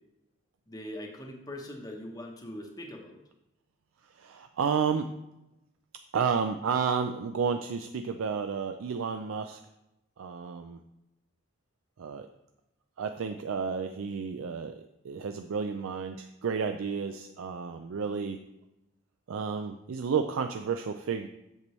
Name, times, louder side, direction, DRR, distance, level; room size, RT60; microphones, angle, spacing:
voice 1, 0.7-3.2, left 1 dB, 20° left, 1 dB, 0.9 m, -41 dB
voice 2, 4.1-5.1 6.1-9.6 10.2-10.8 12.0-12.3 13.0-18.4 19.3-21.3, right 6 dB, 80° right, 7 dB, 0.4 m, -31 dB
8.0 x 6.8 x 3.1 m, 0.90 s
head